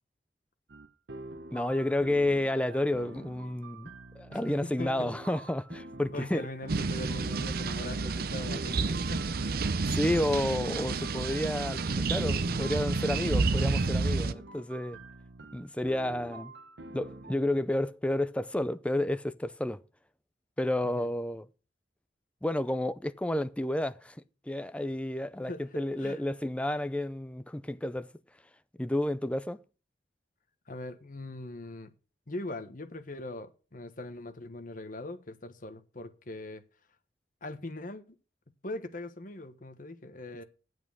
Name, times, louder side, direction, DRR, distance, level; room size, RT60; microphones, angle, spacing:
sound 1, 0.7-17.4, right 2 dB, 80° right, 1.1 m, -47 dB
voice 1, 1.5-6.5 9.9-15.0 15.5-16.5 16.9-19.8 20.6-21.5 22.4-28.1 28.8-29.6, left 1 dB, 5° left, 0.5 m, -31 dB
voice 2, 4.3-5.1 6.1-9.3 21.0-21.1 25.5-26.2 30.7-31.9 32.3-36.6 37.4-38.0 38.6-40.4, left 2 dB, 50° left, 1.3 m, -41 dB
sound 2, 6.7-14.3, right 3 dB, 55° right, 0.6 m, -30 dB
9.5 x 8.0 x 6.3 m
head